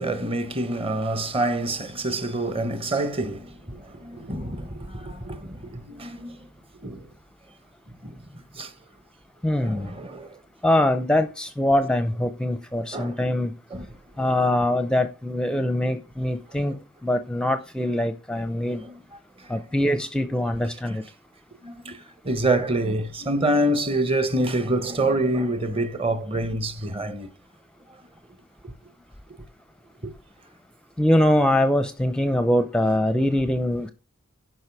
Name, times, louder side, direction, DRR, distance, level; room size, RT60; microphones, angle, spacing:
voice 1, 0.0-6.4 6.8-7.1 8.0-8.2 8.5-8.7 9.6-10.3 12.9-13.1 13.7-13.9 18.7-18.9 21.6-22.0 22.2-27.3 28.6-28.7 30.0-30.1, right 1 dB, 25° right, 1.0 m, -26 dB
voice 2, 9.4-9.9 10.6-13.5 14.2-18.8 19.5-21.0 31.0-33.9, left 1 dB, 5° left, 0.6 m, -23 dB
11.0 x 5.4 x 4.7 m
head